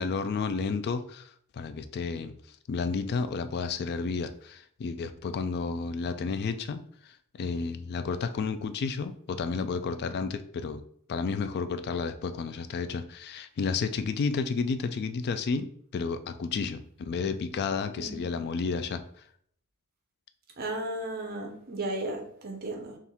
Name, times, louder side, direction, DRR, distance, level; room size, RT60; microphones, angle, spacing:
voice 1, 0.0-2.3 2.7-6.8 7.3-10.8 11.1-19.0, left 5 dB, 45° left, 10 dB, 0.3 m, -31 dB
voice 2, 18.0-18.4 20.6-23.0, right 1 dB, 45° right, 4 dB, 0.7 m, -35 dB
4.2 x 2.4 x 3.5 m, 0.64 s
head